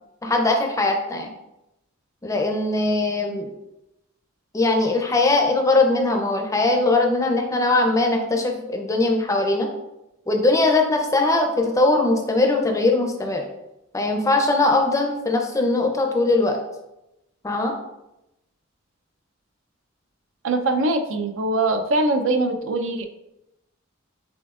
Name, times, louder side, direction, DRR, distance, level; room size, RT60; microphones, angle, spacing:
voice 1, 0.2-1.3 2.2-3.5 4.5-9.7 10.3-13.5 13.9-16.6 17.4-17.8, left 2 dB, 15° left, 3 dB, 0.5 m, -20 dB
voice 2, 20.4-23.1, right 2 dB, 70° right, 7 dB, 0.5 m, -22 dB
6.2 x 3.5 x 2.4 m, 0.91 s
head